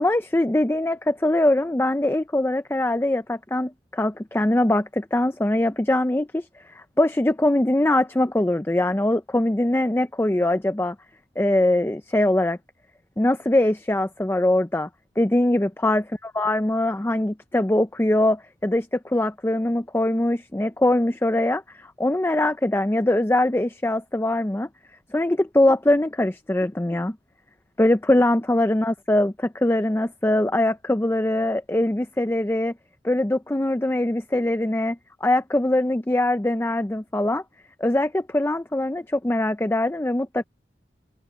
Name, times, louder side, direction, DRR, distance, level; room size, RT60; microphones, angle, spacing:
voice 1, 0.0-11.0 11.4-12.6 13.2-14.9 15.2-16.0 16.4-24.7 25.1-27.2 27.8-32.7 33.0-37.4 37.8-40.4, left 1 dB, 15° left, 0.5 m, -22 dB
head